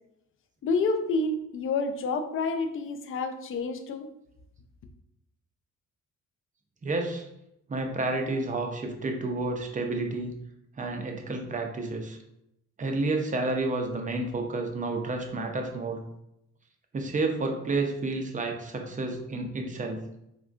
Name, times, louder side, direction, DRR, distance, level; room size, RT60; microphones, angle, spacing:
voice 1, 0.6-4.1, left 3 dB, 45° left, 6 dB, 0.4 m, -28 dB
voice 2, 6.8-7.2 7.7-10.3 10.8-12.2 12.8-16.0 16.9-20.0, right 2 dB, 25° right, 3 dB, 0.5 m, -30 dB
3.5 x 2.2 x 2.4 m, 0.81 s
cardioid pair, 90°, 30 cm